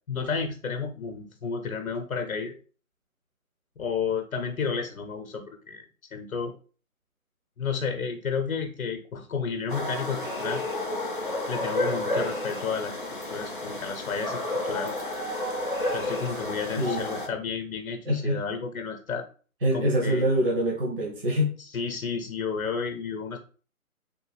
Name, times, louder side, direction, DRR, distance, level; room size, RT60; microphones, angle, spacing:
voice 1, 0.1-2.6 3.8-5.8 6.1-6.5 7.6-10.6 11.5-13.0 13.3-14.9 15.9-19.2 19.7-20.2 21.7-23.4, left 5 dB, 70° left, 5 dB, 0.7 m, -31 dB
sound 1, 9.7-17.3, left 1 dB, 40° left, 0.4 m, -31 dB
voice 2, 18.0-18.4 19.6-21.6, equal, 40° right, -2 dB, 0.6 m, -25 dB
3.4 x 2.2 x 3.2 m, 0.39 s
figure-of-eight pair, 160°, 43 cm